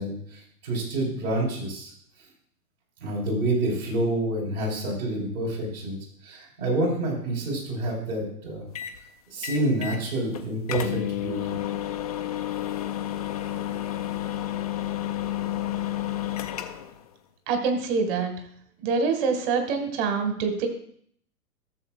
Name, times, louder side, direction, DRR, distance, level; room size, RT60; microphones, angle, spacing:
voice 1, 0.0-1.9 3.0-6.0 6.2-8.6 9.3-11.6, right 1 dB, 65° right, -2 dB, 4.3 m, -28 dB
sound 1, 8.8-9.0 9.4-10.0 10.3-10.4 10.7-17.0, left 12 dB, 25° left, 0.4 m, -30 dB
voice 2, 17.5-18.3 18.8-20.7, right 5 dB, 35° right, 5 dB, 1.8 m, -25 dB
14.5 x 7.3 x 2.4 m, 0.64 s
figure-of-eight pair, 110°, 47 cm